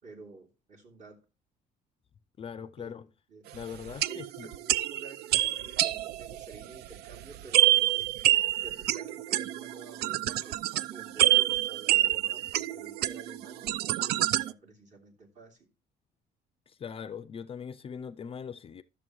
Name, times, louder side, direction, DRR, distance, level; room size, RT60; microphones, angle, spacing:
voice 1, 0.0-1.2 2.8-3.0 3.3-8.1 8.6-15.7, right 3 dB, 45° right, 3.0 m, -50 dB
voice 2, 2.4-3.1 3.5-4.5 16.7-18.8, left 7 dB, 35° left, 0.4 m, -41 dB
sound 1, 3.9-14.5, right 15 dB, 75° right, 0.4 m, -27 dB
12.0 x 6.8 x 3.1 m
cardioid pair, 110°, 17 cm